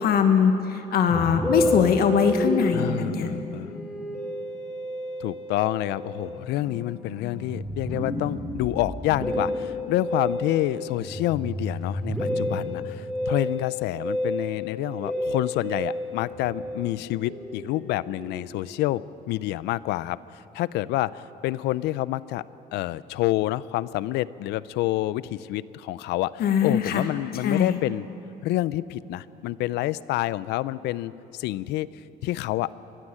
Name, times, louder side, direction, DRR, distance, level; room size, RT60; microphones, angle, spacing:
voice 1, 0.0-3.3 26.4-27.0 27.4-27.8, left 7 dB, 65° left, 7 dB, 1.4 m, -22 dB
Musical instrument, 1.1-18.7, left 1 dB, 5° left, 5.8 m, -31 dB
voice 2, 2.7-3.7 5.2-22.4 22.7-28.1 28.4-31.9 32.2-32.7, left 16 dB, 85° left, 18 dB, 0.5 m, -28 dB
23.0 x 14.0 x 10.0 m, 3.0 s
cardioid pair, 110°, 17 cm